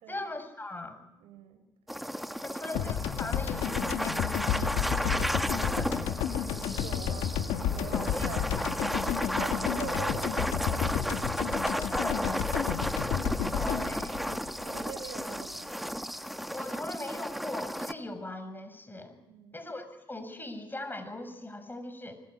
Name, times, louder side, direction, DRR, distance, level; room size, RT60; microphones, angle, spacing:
voice 1, 0.1-1.0 2.4-7.2 7.9-8.7 11.6-12.4 13.5-14.2 16.5-19.2 19.5-22.2, left 2 dB, 20° left, 9 dB, 6.7 m, -40 dB
voice 2, 1.2-1.6 2.5-2.9 6.8-7.4 7.7-8.5 9.0-10.9 12.7-13.1 14.6-15.7 19.3-19.6, right 8 dB, 75° right, 9 dB, 4.3 m, -45 dB
sound 1, 1.9-17.9, equal, ahead, 1.7 m, -34 dB
sound 2, 2.8-15.2, left 9 dB, 75° left, 1.8 m, -31 dB
25.0 x 20.5 x 9.8 m, 0.90 s
hypercardioid pair, 50°, 10 cm